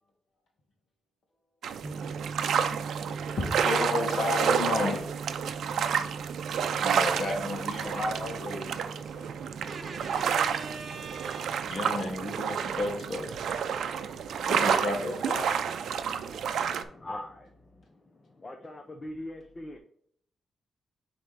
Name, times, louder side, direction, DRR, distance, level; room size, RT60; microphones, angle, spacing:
sound 1, 1.6-16.8, right 7 dB, 80° right, 0.5 m, -30 dB
sound 2, 1.8-14.1, right 5 dB, 30° right, 0.6 m, -42 dB
voice 1, 2.4-5.1 6.8-9.4 11.7-13.3 14.4-15.6, left 2 dB, 55° left, 1 dB, 1.8 m, -33 dB
voice 2, 9.7-11.7, right 4 dB, 50° right, 6 dB, 1.1 m, -41 dB
voice 3, 16.7-19.8, left 1 dB, 25° left, 4 dB, 0.6 m, -42 dB
9.4 x 3.4 x 3.4 m, 0.68 s
wide cardioid pair, 135°, 0 cm